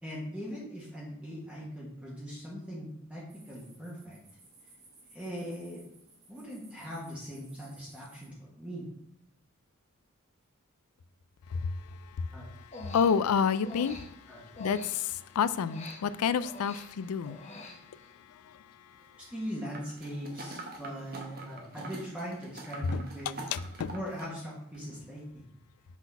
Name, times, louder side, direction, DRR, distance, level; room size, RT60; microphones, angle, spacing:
voice 1, 0.0-4.2 5.1-5.8 6.3-8.9 12.3-12.5 14.3-14.5 19.3-23.3 23.9-25.4, equal, 5° right, 1.4 m, -40 dB
sound 1, 3.3-8.3, right 2 dB, 60° right, 2.9 m, -58 dB
voice 2, 12.5-14.0 14.6-17.4 18.5-18.6 22.9-23.0 23.5-23.9, left 6 dB, 80° left, 0.4 m, -29 dB
Human voice, 12.6-15.3 15.7-18.2, left 1 dB, 30° left, 0.9 m, -46 dB
sound 2, 19.7-24.4 24.7-24.8, right 2 dB, 45° right, 1.1 m, -45 dB
6.0 x 4.1 x 5.5 m
head